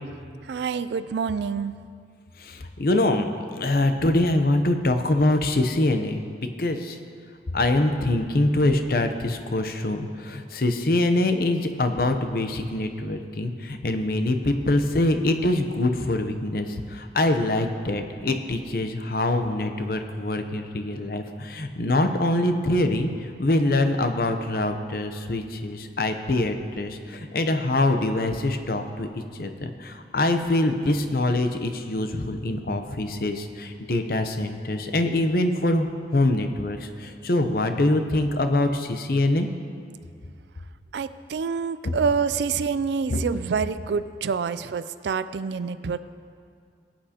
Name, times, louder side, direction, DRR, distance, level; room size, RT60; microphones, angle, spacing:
voice 1, 0.5-1.8 40.9-46.0, right 5 dB, 75° right, 13 dB, 0.3 m, -27 dB
voice 2, 2.4-7.0 7.5-23.1 23.4-29.1 29.3-35.9 36.1-39.5 43.1-43.2, left 2 dB, 55° left, 7 dB, 0.7 m, -24 dB
20.5 x 8.6 x 2.9 m, 2.2 s
head